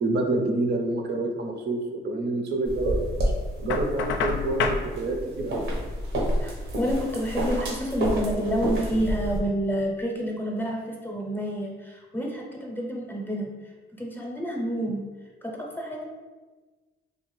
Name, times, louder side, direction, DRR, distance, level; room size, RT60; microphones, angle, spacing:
voice 1, 0.0-3.0 3.6-5.7, right 2 dB, 55° right, 2 dB, 0.7 m, -27 dB
sound 1, 2.7-9.4, equal, 80° right, 1.0 m, -29 dB
Knock, 3.7-4.9, left 5 dB, 70° left, 0.4 m, -27 dB
voice 2, 6.4-13.5 14.0-15.0 15.4-16.0, equal, 10° left, -1 dB, 0.6 m, -29 dB
3.3 x 2.4 x 3.2 m, 1.3 s
cardioid pair, 90°, 20 cm